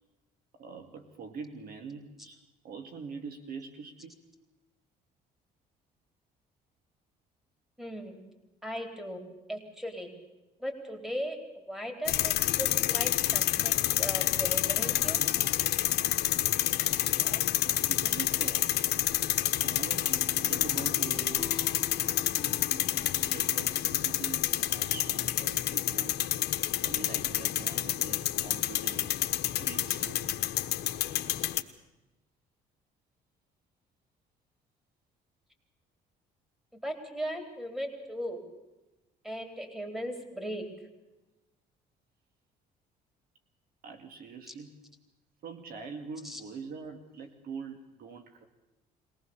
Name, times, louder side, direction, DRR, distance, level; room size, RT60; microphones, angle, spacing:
voice 1, 0.6-4.2 17.1-18.7 19.4-21.8 23.2-26.2 26.8-29.2 29.6-30.3 43.8-44.7 45.4-48.4, right 5 dB, 60° right, 7 dB, 2.3 m, -44 dB
voice 2, 7.8-8.2 8.6-10.1 10.6-11.4 11.7-15.2 36.7-38.4 39.2-40.6 44.5-44.6 46.2-46.4, equal, ahead, 5 dB, 3.9 m, -37 dB
sound 1, 12.1-31.6, left 14 dB, 75° left, 1.3 m, -29 dB
sound 2, 20.0-24.7, left 2 dB, 15° left, 1.2 m, -46 dB
22.5 x 18.5 x 7.1 m, 1.0 s
cardioid pair, 110°, 17 cm